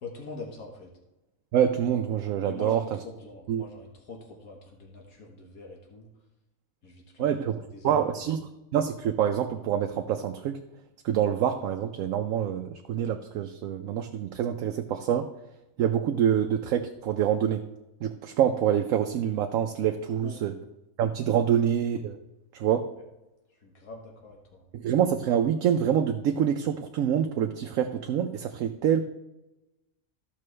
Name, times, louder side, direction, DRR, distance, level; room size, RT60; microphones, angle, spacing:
voice 1, 0.0-0.9 2.5-6.1 6.8-8.1 20.2-20.4 23.6-24.6, left 3 dB, 80° left, 0 dB, 1.7 m, -43 dB
voice 2, 1.5-2.8 3.5-3.6 7.2-7.5 7.8-8.4 8.7-10.6 11.0-15.3 15.8-17.6 18.0-20.5 21.0-22.2 22.5-22.9 24.7-29.0, right 9 dB, 75° right, 5 dB, 1.0 m, -26 dB
14.0 x 6.0 x 3.2 m, 0.97 s
omnidirectional pair, 1.5 m